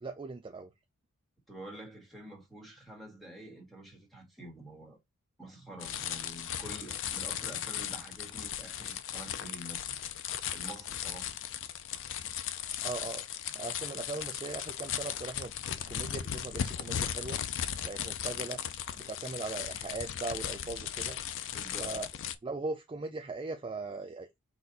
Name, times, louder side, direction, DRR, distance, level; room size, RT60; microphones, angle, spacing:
voice 1, 0.0-0.7 12.8-13.3 13.5-17.4 17.8-18.6 18.9-21.2 21.8-22.1 22.4-24.4, right 3 dB, 25° right, 0.4 m, -39 dB
voice 2, 1.5-5.0 5.4-10.0 10.5-11.4 21.5-22.0, right 1 dB, ahead, 1.6 m, -48 dB
sound 1, 5.8-22.4, left 9 dB, 60° left, 0.4 m, -37 dB
4.2 x 2.5 x 4.0 m
head